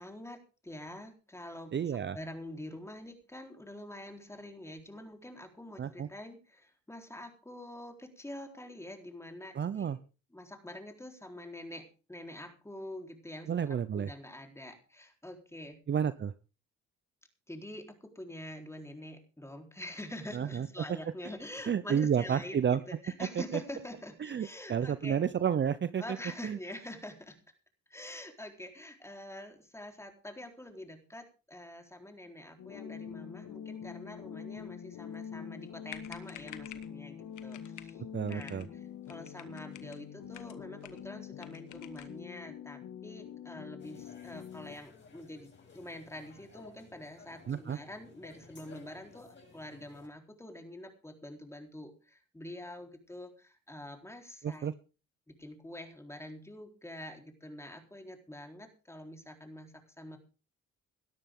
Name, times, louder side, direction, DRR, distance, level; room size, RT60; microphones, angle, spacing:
voice 1, 0.0-10.0 10.3-15.8 17.5-25.2 26.0-27.4 27.9-54.7 55.3-60.2, left 1 dB, 10° left, 4 dB, 4.0 m, -46 dB
voice 2, 1.7-2.2 5.8-6.1 9.5-10.0 13.5-14.1 15.9-16.3 20.3-20.7 21.7-22.8 23.5-23.6 24.2-26.2 26.4-26.6 38.1-38.7 47.5-47.8 54.4-54.7, right 8 dB, 40° right, 15 dB, 0.7 m, -31 dB
sound 1, 32.6-44.7, left 8 dB, 70° left, 1.8 m, -45 dB
sound 2, 35.6-35.7 35.9-36.9 37.4-38.0 38.3-38.7 39.1-40.0 40.3-41.1 41.4-42.2, left 12 dB, 90° left, 1.5 m, -50 dB
sound 3, 43.8-50.1, left 4 dB, 40° left, 7.1 m, -56 dB
18.5 x 12.5 x 3.8 m, 0.34 s
cardioid pair, 90°, 30 cm